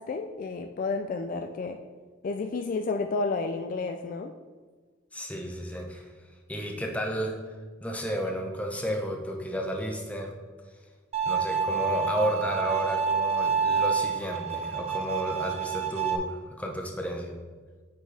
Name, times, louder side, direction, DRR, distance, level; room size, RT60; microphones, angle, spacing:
voice 1, 0.0-1.8 2.2-4.3, left 3 dB, 45° left, 6 dB, 0.3 m, -31 dB
voice 2, 5.1-6.1 6.5-7.3 7.8-10.3 11.2-17.3, equal, 10° left, 1 dB, 0.8 m, -32 dB
Bowed string instrument, 11.1-16.2, right 6 dB, 35° right, 0.5 m, -28 dB
9.3 x 4.4 x 3.3 m, 1.4 s
head